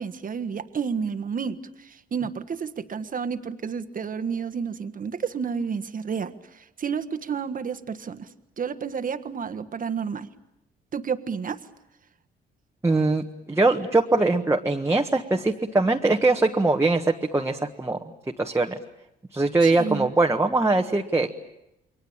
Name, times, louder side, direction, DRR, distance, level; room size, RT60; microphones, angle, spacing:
voice 1, 0.0-8.3 8.6-10.3 10.9-11.6 19.6-20.1, right 6 dB, 45° right, 11 dB, 1.5 m, -31 dB
voice 2, 12.8-18.0 18.4-18.8 19.3-21.4, right 2 dB, 15° right, 2 dB, 1.4 m, -22 dB
29.0 x 22.5 x 8.8 m, 0.87 s
cardioid pair, 90°, 20 cm